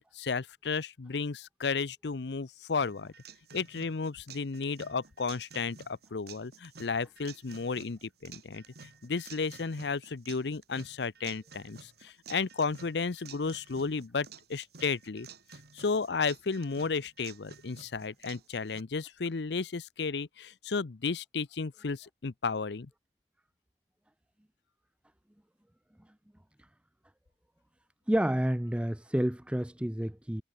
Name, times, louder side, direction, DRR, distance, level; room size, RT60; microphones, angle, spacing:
voice 1, 0.0-3.1 3.5-15.3 15.7-22.9, left 4 dB, 70° left, 0.7 m, -33 dB
sound 1, 2.8-18.8, right 6 dB, 65° right, 4.3 m, -52 dB
voice 2, 28.1-30.4, equal, 5° right, 0.6 m, -29 dB
head